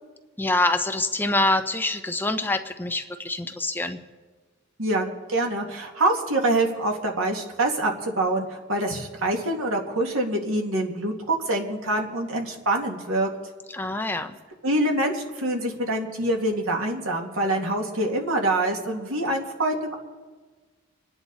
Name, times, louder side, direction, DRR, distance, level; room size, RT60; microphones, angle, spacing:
voice 1, 0.4-4.0 13.7-14.4, left 2 dB, 10° left, 6 dB, 0.7 m, -25 dB
voice 2, 4.8-13.3 14.6-20.0, right 1 dB, 90° right, 1 dB, 2.3 m, -25 dB
27.5 x 9.9 x 4.1 m, 1.4 s
head